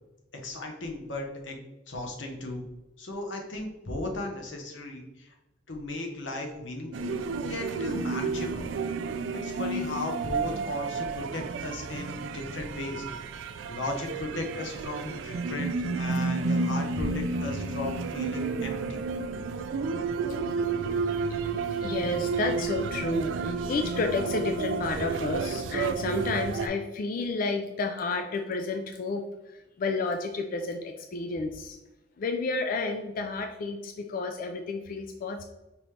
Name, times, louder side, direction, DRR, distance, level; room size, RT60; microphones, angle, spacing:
voice 1, 0.4-1.6 1.9-2.6 3.0-5.3 5.7-7.1 7.4-8.7 9.4-13.3 13.7-15.7 15.9-19.0, left 2 dB, 90° left, 2 dB, 0.9 m, -36 dB
sound 1, 6.9-26.7, right 4 dB, 80° right, 0.3 m, -31 dB
voice 2, 21.4-31.8 32.2-35.4, left 3 dB, 50° left, 5 dB, 0.3 m, -31 dB
5.2 x 3.0 x 3.2 m, 1.0 s
head